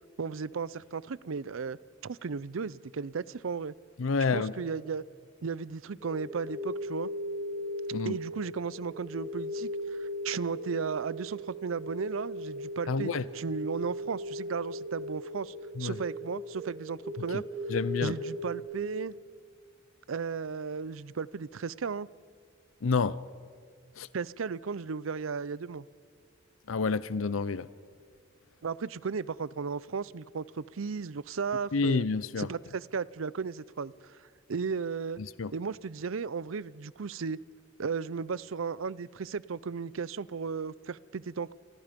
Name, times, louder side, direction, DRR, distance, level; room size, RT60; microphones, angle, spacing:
voice 1, 0.2-3.7 4.3-5.0 5.4-7.1 8.0-15.5 15.8-17.4 18.0-19.2 20.1-22.1 24.1-25.8 28.6-32.1 32.4-33.9 34.5-35.2 35.5-37.4 37.8-41.5, right 5 dB, 80° right, 20 dB, 0.6 m, -35 dB
voice 2, 4.0-4.5 7.9-8.1 12.9-13.2 15.8-16.0 17.3-17.4 17.7-18.1 22.8-23.2 24.0-24.1 26.7-27.7 31.7-32.5 35.2-35.5, left 4 dB, 80° left, 17 dB, 0.6 m, -29 dB
sound 1, 6.0-18.4, equal, 30° right, 6.5 m, -38 dB
29.5 x 27.0 x 5.2 m, 2.1 s
head